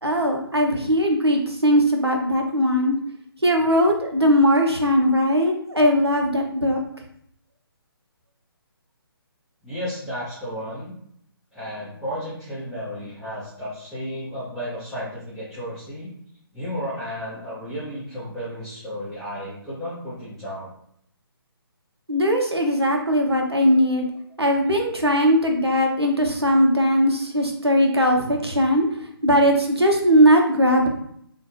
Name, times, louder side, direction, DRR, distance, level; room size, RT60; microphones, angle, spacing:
voice 1, 0.0-3.0 3.4-6.8 22.1-24.1 24.4-28.9 29.2-30.9, equal, 90° right, 2 dB, 0.8 m, -19 dB
voice 2, 9.6-10.9 11.5-16.1 16.5-20.7, equal, ahead, -14 dB, 0.6 m, -33 dB
3.4 x 2.4 x 3.1 m, 0.69 s
figure-of-eight pair, 140°, 13 cm